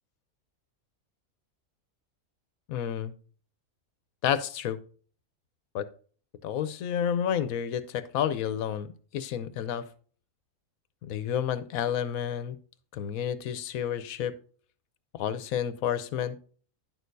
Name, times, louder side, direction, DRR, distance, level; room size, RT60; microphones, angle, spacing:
voice 1, 2.7-3.1 4.2-4.8 5.7-5.9 6.4-9.9 11.0-12.6 12.9-14.3 15.1-16.4, left 9 dB, 80° left, 13 dB, 1.1 m, -30 dB
10.5 x 6.4 x 2.6 m, 0.43 s
omnidirectional pair, 1.5 m